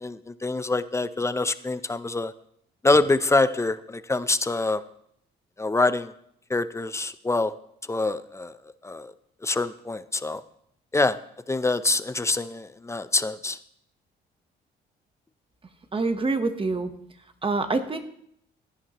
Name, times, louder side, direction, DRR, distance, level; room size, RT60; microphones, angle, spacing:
voice 1, 0.0-2.3 2.8-4.8 5.6-6.1 6.5-7.5 7.9-8.6 8.8-9.1 9.4-10.4 10.9-11.2 11.5-13.6, left 2 dB, 15° left, 14 dB, 0.5 m, -25 dB
voice 2, 15.9-16.9 17.4-18.0, right 3 dB, 25° right, 8 dB, 1.0 m, -25 dB
16.0 x 9.8 x 3.0 m, 0.71 s
cardioid pair, 90°, 20 cm